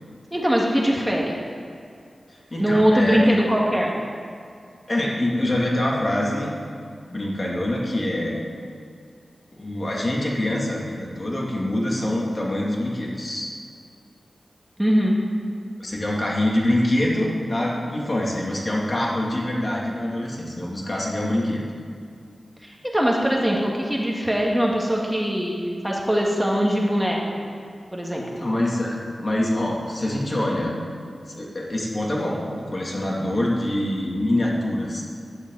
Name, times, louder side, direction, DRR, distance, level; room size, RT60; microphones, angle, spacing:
voice 1, 0.3-1.4 2.6-3.9 14.8-15.2 22.6-25.6 25.8-27.4 27.9-28.4, equal, 5° right, -2 dB, 2.1 m, -21 dB
voice 2, 2.5-3.4 4.9-6.6 7.1-8.4 9.5-13.5 15.8-21.6 28.4-30.8 31.3-35.0, left 1 dB, 40° left, -3 dB, 3.0 m, -25 dB
16.0 x 11.0 x 4.2 m, 2.3 s
cardioid pair, 50°, 0 cm